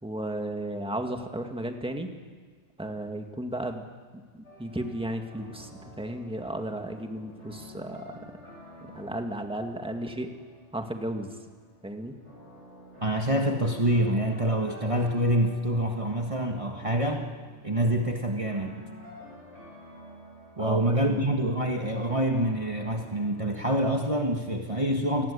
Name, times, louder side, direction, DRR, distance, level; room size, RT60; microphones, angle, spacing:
voice 1, 0.0-2.1 2.8-3.8 4.3-8.1 8.8-10.3 10.7-11.3 11.8-12.2 20.6-21.2, right 1 dB, 5° right, 4 dB, 1.9 m, -34 dB
sound 1, 4.4-23.3, left 1 dB, 75° left, 8.1 m, -49 dB
voice 2, 13.0-17.3 17.6-18.8 20.6-25.3, right 1 dB, 30° right, 2 dB, 1.6 m, -26 dB
28.0 x 20.0 x 8.4 m, 1.5 s
omnidirectional pair, 1.2 m